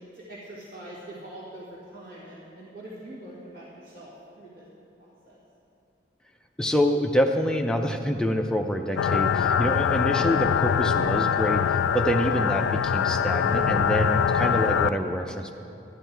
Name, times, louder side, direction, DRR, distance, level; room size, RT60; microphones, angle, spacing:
voice 1, 0.0-4.7 5.0-5.4, right 1 dB, 65° right, -9 dB, 2.0 m, -43 dB
voice 2, 6.6-15.5, equal, 5° left, 3 dB, 0.4 m, -26 dB
sound 1, 9.0-14.9, left 7 dB, 80° left, 0.3 m, -23 dB
11.5 x 11.0 x 4.6 m, 2.8 s
head